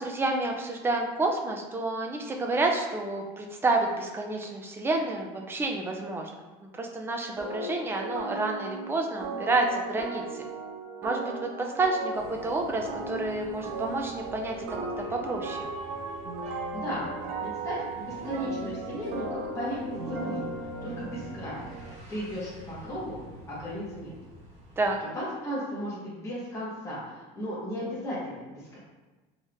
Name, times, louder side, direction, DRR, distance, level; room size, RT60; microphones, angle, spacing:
voice 1, 0.0-6.5 6.8-10.4 11.0-14.7 15.0-15.7 24.8-25.0, right 2 dB, 15° right, 2 dB, 0.4 m, -29 dB
sound 1, 7.4-22.0, right 3 dB, 85° right, 0.7 m, -36 dB
sound 2, 12.1-24.9, equal, 40° right, 1.3 m, -49 dB
voice 2, 16.5-17.1 17.4-19.3 19.5-20.5 20.8-21.6 22.1-23.2 23.5-24.1 25.1-28.8, equal, 15° left, -9 dB, 1.2 m, -35 dB
3.9 x 3.3 x 2.5 m, 1.2 s
cardioid pair, 135°, 18 cm